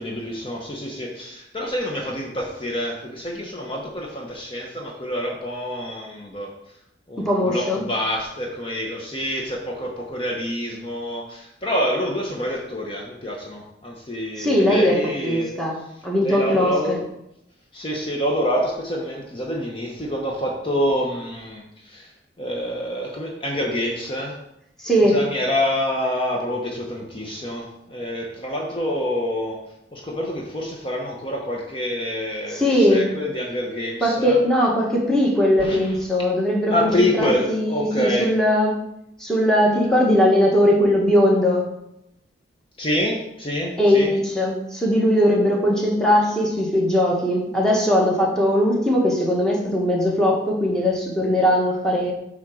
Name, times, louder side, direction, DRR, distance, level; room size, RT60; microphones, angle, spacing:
voice 1, 0.0-6.8 7.1-17.1 17.7-24.4 25.0-34.4 35.6-36.0 36.7-38.3 42.8-44.1, equal, 30° left, -1 dB, 1.0 m, -27 dB
voice 2, 7.2-7.8 14.4-15.7 16.0-16.7 24.8-25.1 32.5-33.1 34.0-38.7 39.2-41.7 43.8-52.1, equal, 5° left, -2 dB, 1.6 m, -19 dB
8.6 x 3.6 x 6.2 m, 0.82 s
head